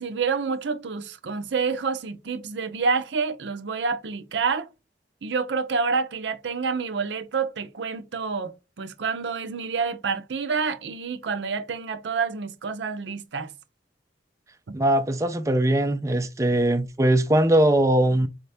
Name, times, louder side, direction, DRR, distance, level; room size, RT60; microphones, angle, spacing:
voice 1, 0.0-4.7 5.2-13.5 14.7-14.8, right 5 dB, 85° right, 0.6 m, -28 dB
voice 2, 14.7-18.3, right 1 dB, 15° right, 0.4 m, -21 dB
4.3 x 2.7 x 3.3 m
head